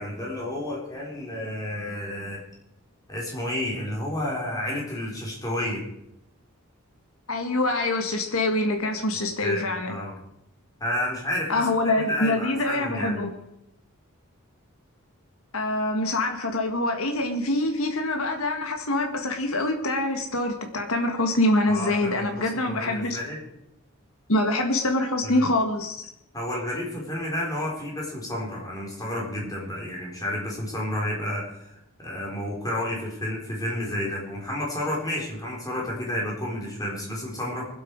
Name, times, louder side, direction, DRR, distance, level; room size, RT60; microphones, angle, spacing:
voice 1, 0.0-2.4 3.1-5.8 9.1-10.2 10.8-11.6 11.9-13.2 21.7-23.4 25.2-25.5 26.3-37.7, left 1 dB, 15° left, -3 dB, 4.1 m, -31 dB
voice 2, 7.3-10.0 11.5-13.3 15.5-23.2 24.3-26.0, left 2 dB, 80° left, 4 dB, 1.8 m, -25 dB
23.5 x 8.2 x 4.7 m, 0.81 s
head